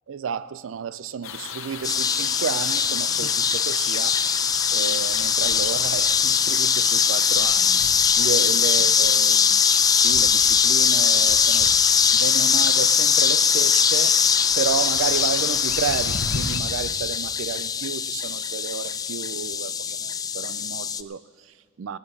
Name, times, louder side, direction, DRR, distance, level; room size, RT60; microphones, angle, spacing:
voice 1, 0.1-4.2 4.7-7.8 8.2-9.6 10.0-14.2 14.5-22.0, right 7 dB, 70° right, 16 dB, 0.4 m, -31 dB
sound 1, 1.2-16.6, left 6 dB, 90° left, 0.9 m, -35 dB
sound 2, 1.8-21.0, left 7 dB, 20° left, 0.3 m, -21 dB
17.5 x 9.6 x 6.2 m, 2.2 s
head